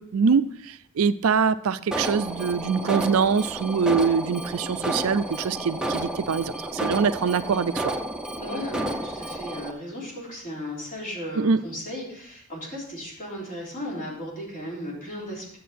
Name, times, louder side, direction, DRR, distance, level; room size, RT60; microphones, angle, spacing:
voice 1, 0.0-7.9 11.4-11.6, right 5 dB, 70° right, 13 dB, 0.4 m, -24 dB
Alarm, 1.9-9.7, right 1 dB, 5° right, 0.7 m, -31 dB
voice 2, 8.4-15.6, left 1 dB, 40° left, -4 dB, 3.6 m, -35 dB
10.0 x 7.3 x 4.2 m, 0.65 s
head